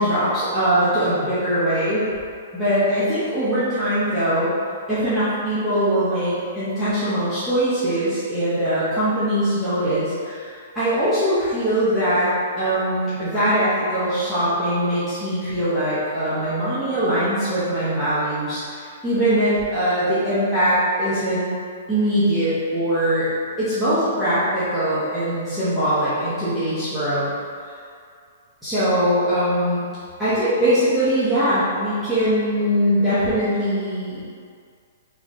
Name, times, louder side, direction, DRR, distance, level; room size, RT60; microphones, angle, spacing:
voice 1, 0.0-2.1 2.5-4.5 4.9-12.3 12.6-21.5 21.9-23.3 23.6-27.3 28.6-29.8 30.2-34.2, equal, ahead, -17 dB, 0.9 m, -21 dB
4.1 x 3.0 x 3.6 m, 2.2 s
hypercardioid pair, 165°, 0 cm